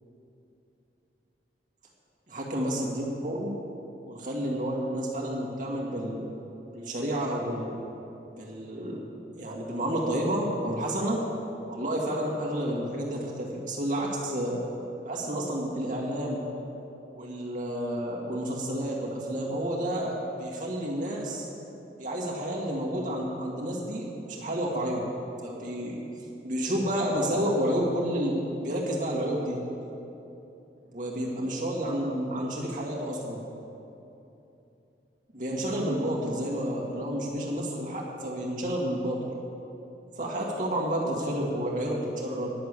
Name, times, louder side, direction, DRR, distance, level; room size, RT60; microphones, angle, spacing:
voice 1, 2.3-3.5 4.1-6.3 6.7-7.7 8.3-9.0 9.3-11.2 11.7-14.6 15.0-16.4 17.1-21.5 22.0-25.1 25.4-26.0 26.4-29.6 30.9-33.4 35.3-39.3 40.2-42.5, right 1 dB, 45° right, -4 dB, 1.9 m, -30 dB
10.5 x 6.9 x 8.1 m, 2.9 s
head